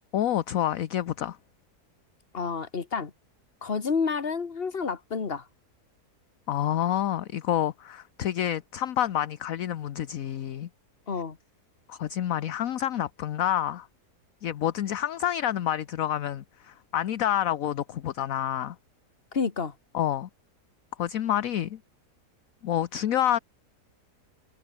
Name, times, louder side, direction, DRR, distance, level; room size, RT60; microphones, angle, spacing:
voice 1, 0.1-1.4 6.5-10.7 11.9-13.9 14.4-18.8 19.9-20.3 21.0-21.8 22.6-23.4, left 11 dB, 60° left, 1.2 m, -28 dB
voice 2, 2.3-3.1 3.6-5.5 11.1-11.4 19.3-19.7, left 5 dB, 35° left, 1.8 m, -29 dB
omnidirectional pair, 1.7 m